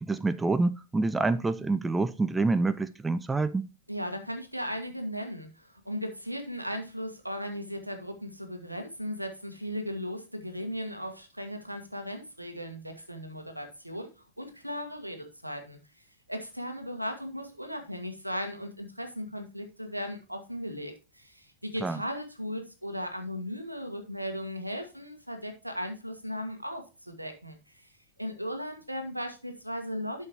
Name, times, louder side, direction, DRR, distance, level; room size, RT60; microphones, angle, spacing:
voice 1, 0.0-3.7 21.8-22.0, right 3 dB, 10° right, 0.5 m, -27 dB
voice 2, 3.9-14.1 14.4-27.9 28.2-30.3, equal, 90° right, 1.7 m, -37 dB
12.0 x 6.4 x 3.0 m
figure-of-eight pair, 90°, 0 cm